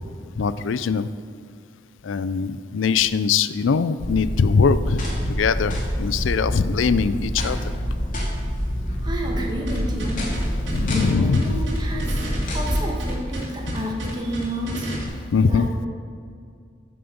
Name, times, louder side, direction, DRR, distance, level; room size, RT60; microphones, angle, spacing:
voice 1, 0.4-1.1 2.0-7.6 10.7-11.6 15.3-15.7, left 5 dB, 85° left, 14 dB, 0.4 m, -21 dB
sound 1, 4.0-12.9, equal, 45° left, 2.5 m, -27 dB
voice 2, 9.0-10.3 10.8-12.2 12.5-15.9, equal, 20° right, 0 dB, 1.6 m, -31 dB
sound 2, 9.7-15.0, equal, 75° right, 2.9 m, -31 dB
13.0 x 7.7 x 5.2 m, 2.2 s
head